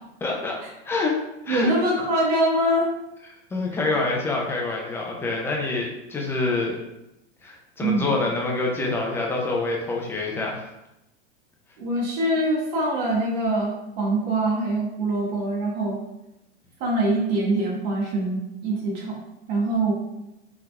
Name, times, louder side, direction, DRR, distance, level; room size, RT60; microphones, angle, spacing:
voice 1, 0.2-0.5 0.8-1.1 1.4-1.7 3.5-6.8 7.4-10.7, left 3 dB, 5° left, -1 dB, 0.3 m, -26 dB
voice 2, 1.5-2.9 7.8-8.1 11.8-16.0 16.8-19.1 19.5-19.9, right 1 dB, 55° right, -3 dB, 1.1 m, -24 dB
3.8 x 2.8 x 2.2 m, 0.90 s
supercardioid pair, 125°, 33 cm